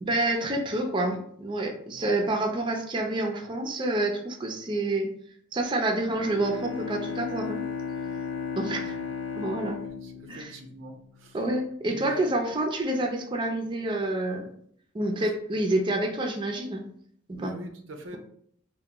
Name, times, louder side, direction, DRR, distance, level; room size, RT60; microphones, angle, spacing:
voice 1, 0.0-5.1 5.5-7.7 8.6-8.9 9.4-9.8 10.3-10.5 11.3-14.5 14.9-16.8 17.3-17.5, right 1 dB, 25° right, 2 dB, 0.4 m, -28 dB
Bowed string instrument, 6.1-11.3, left 6 dB, 65° left, 0.5 m, -35 dB
voice 2, 10.0-11.4 11.9-12.3 17.4-18.2, right 1 dB, 90° right, 4 dB, 0.6 m, -43 dB
3.4 x 2.2 x 2.9 m, 0.65 s
head